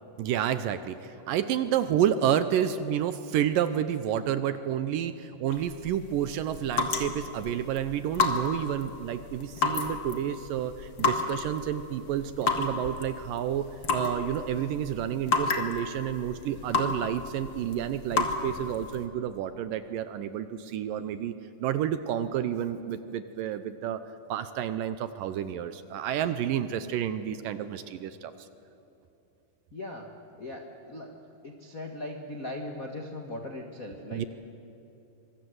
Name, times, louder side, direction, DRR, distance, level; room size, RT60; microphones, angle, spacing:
voice 1, 0.2-13.7 13.9-21.3 21.6-24.0 24.3-28.3 34.1-34.3, right 10 dB, 75° right, 11 dB, 2.2 m, -30 dB
sound 1, 5.5-19.0, left 4 dB, 45° left, 1.7 m, -32 dB
voice 2, 29.7-30.1 30.4-31.2 31.4-34.2, left 1 dB, 65° left, 3 dB, 0.8 m, -39 dB
25.5 x 24.0 x 8.0 m, 2.9 s
omnidirectional pair, 4.5 m